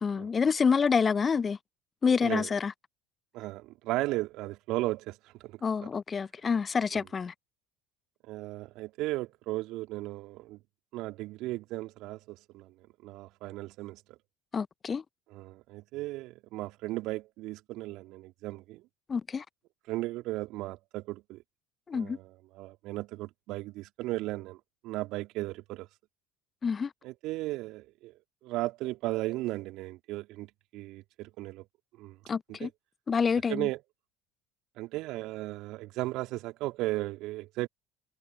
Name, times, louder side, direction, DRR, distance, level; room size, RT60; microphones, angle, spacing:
voice 1, 0.0-1.6 2.0-2.7 5.6-7.3 14.5-15.0 19.1-19.4 21.9-22.2 26.6-26.9 32.3-32.7 33.1-33.7, left 5 dB, 30° left, 0.7 m, -27 dB
voice 2, 3.3-5.2 5.4-5.6 8.3-10.6 10.9-12.7 13.0-14.2 15.3-18.8 19.9-21.4 21.9-24.6 24.8-25.9 27.0-28.1 28.4-31.7 32.0-32.2 32.5-32.7 33.5-33.8 34.8-37.7, right 19 dB, 60° right, 2.6 m, -36 dB
figure-of-eight pair, 65°, 0 cm